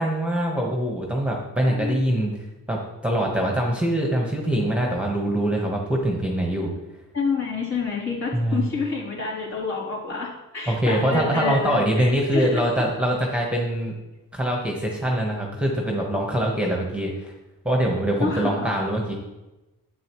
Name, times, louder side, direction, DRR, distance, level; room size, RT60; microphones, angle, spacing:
voice 1, 0.0-2.3 2.7-6.7 8.3-8.6 10.7-13.9 14.3-17.3 17.6-19.1, right 1 dB, 5° right, -1 dB, 1.2 m, -23 dB
voice 2, 1.7-2.0 7.1-12.6 18.2-18.9, left 4 dB, 50° left, -6 dB, 3.5 m, -28 dB
10.0 x 7.9 x 3.1 m, 1.0 s
wide cardioid pair, 115°, 35 cm